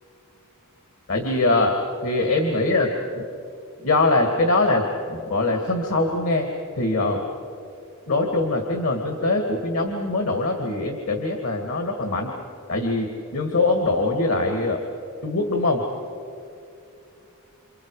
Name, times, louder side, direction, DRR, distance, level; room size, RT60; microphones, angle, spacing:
voice 1, 1.1-1.7 2.0-3.2 3.8-6.5 6.8-7.2 8.1-12.3 12.7-13.1 13.3-14.8 15.2-15.8, left 2 dB, 70° left, 3 dB, 2.3 m, -22 dB
29.5 x 28.0 x 5.0 m, 2.6 s
head